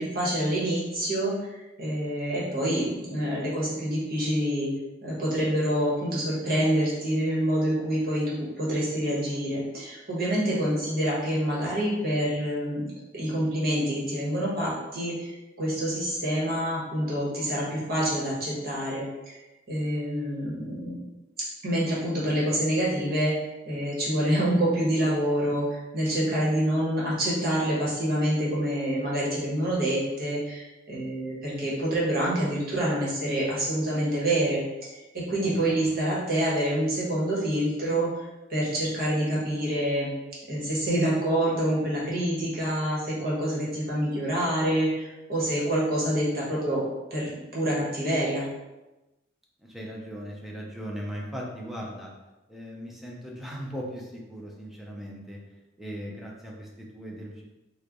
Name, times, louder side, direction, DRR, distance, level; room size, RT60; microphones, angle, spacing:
voice 1, 0.0-4.7 5.0-12.8 13.1-19.3 19.7-21.0 21.6-40.1 40.5-46.8 47.1-48.5, right 1 dB, 50° right, -6 dB, 1.2 m, -27 dB
voice 2, 35.4-35.8 49.6-52.1 52.5-55.4 55.8-57.4, equal, ahead, -3 dB, 0.4 m, -38 dB
3.1 x 2.2 x 3.7 m, 1.0 s
head